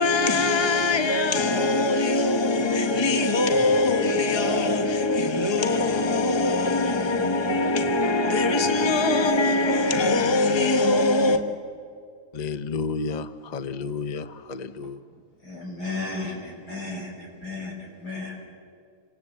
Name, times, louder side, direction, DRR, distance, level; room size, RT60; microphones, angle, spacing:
voice 1, 0.0-11.4, left 2 dB, 15° left, 1.5 m, -22 dB
voice 2, 12.3-15.0, left 4 dB, 35° left, 0.8 m, -31 dB
voice 3, 15.4-18.4, left 3 dB, 85° left, 6.5 m, -34 dB
28.5 x 26.0 x 8.0 m
omnidirectional pair, 1.7 m